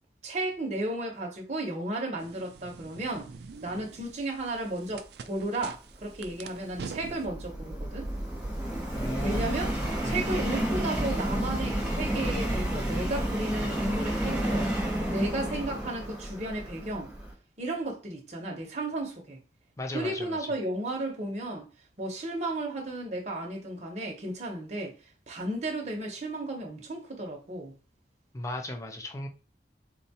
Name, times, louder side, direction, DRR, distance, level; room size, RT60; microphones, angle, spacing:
voice 1, 0.2-3.3 3.6-8.1 9.2-9.7 10.0-14.7 15.1-17.1 17.6-19.4 19.9-21.7 22.0-25.0 25.3-27.7, right 1 dB, 40° right, 0.8 m, -34 dB
sound 1, 2.2-7.3, right 5 dB, 65° right, 0.3 m, -45 dB
Subway metro underground, 6.0-17.3, right 1 dB, 5° right, 0.9 m, -31 dB
voice 2, 8.9-9.4 10.0-10.2 19.8-20.5 28.3-29.3, left 1 dB, 20° left, 0.5 m, -36 dB
4.0 x 2.3 x 2.8 m
head